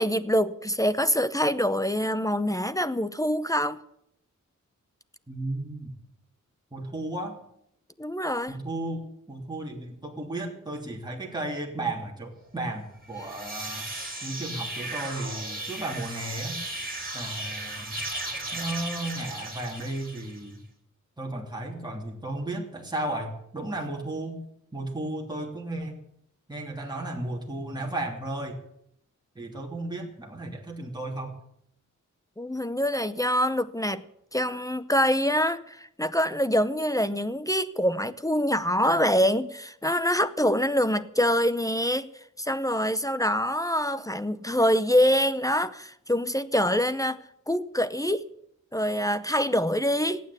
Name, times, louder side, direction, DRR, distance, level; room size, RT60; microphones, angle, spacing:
voice 1, 0.0-3.8 8.0-8.6 32.4-34.0 34.3-42.1 42.4-47.2 47.5-48.3 48.7-50.2, equal, 10° left, 0.7 m, -25 dB
voice 2, 5.3-5.9 6.7-7.4 8.5-13.9 14.2-16.6 17.1-18.0 18.5-20.6 21.2-24.4 24.7-26.0 26.5-28.6 29.3-31.3, right 2 dB, 15° right, 3.0 m, -34 dB
sound 1, 13.0-20.5, right 1 dB, 30° right, 5.4 m, -36 dB
17.0 x 9.3 x 8.4 m
wide cardioid pair, 95°, 31 cm